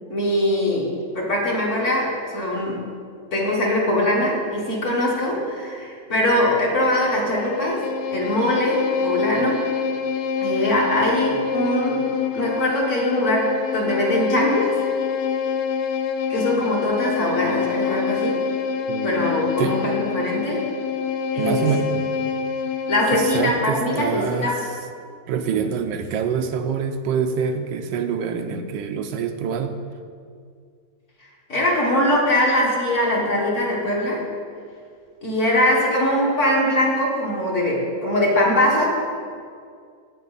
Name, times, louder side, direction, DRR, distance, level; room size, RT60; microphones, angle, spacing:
voice 1, 0.1-2.9 3.3-7.8 8.1-9.6 10.4-14.7 16.3-18.4 19.0-20.7 21.3-21.7 22.9-24.6 31.5-34.2 35.2-38.9, left 1 dB, 45° left, -3 dB, 1.8 m, -22 dB
Bowed string instrument, 7.0-23.7, left 6 dB, 75° left, 1.1 m, -26 dB
voice 2, 18.9-19.8 21.4-22.1 23.1-24.5 25.3-29.8, right 7 dB, 90° right, 7 dB, 1.3 m, -26 dB
9.2 x 7.9 x 4.0 m, 2.2 s
omnidirectional pair, 1.9 m